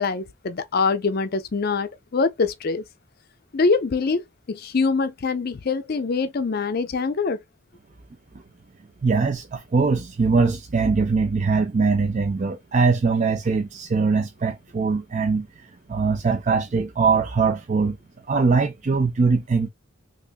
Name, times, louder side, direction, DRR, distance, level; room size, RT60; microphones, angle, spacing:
voice 1, 0.0-2.8 3.5-7.4, left 4 dB, 45° left, 0.5 m, -24 dB
voice 2, 9.0-18.0 18.3-19.7, right 4 dB, 35° right, 0.4 m, -22 dB
3.4 x 3.0 x 2.4 m
head